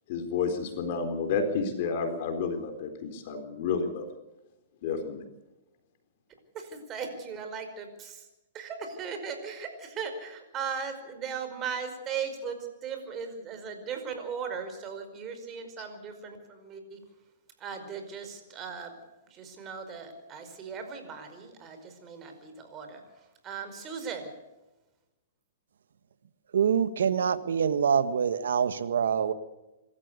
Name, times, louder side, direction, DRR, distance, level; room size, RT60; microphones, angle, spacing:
voice 1, 0.1-4.1 4.8-5.3, left 5 dB, 50° left, 5 dB, 3.9 m, -30 dB
voice 2, 6.5-8.2 8.5-17.0 17.6-18.9 19.3-23.0 23.4-24.3, right 6 dB, 25° right, 7 dB, 5.1 m, -38 dB
voice 3, 26.5-29.3, right 7 dB, 80° right, 12 dB, 1.6 m, -25 dB
26.0 x 13.5 x 8.2 m, 1.0 s
hypercardioid pair, 135°, 0 cm